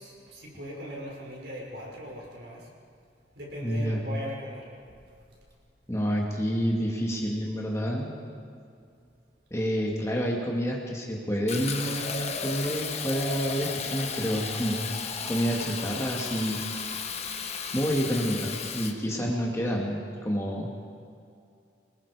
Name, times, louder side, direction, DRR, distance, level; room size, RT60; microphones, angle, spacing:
voice 1, 0.0-2.7 3.3-4.7, equal, 60° right, -3 dB, 5.7 m, -39 dB
voice 2, 3.6-4.0 5.9-8.1 9.5-14.9 15.3-16.7 17.7-20.7, equal, 15° left, -1 dB, 2.3 m, -28 dB
Fill (with liquid), 11.5-18.9, left 5 dB, 35° left, 1.4 m, -34 dB
25.5 x 21.0 x 5.1 m, 2.4 s
head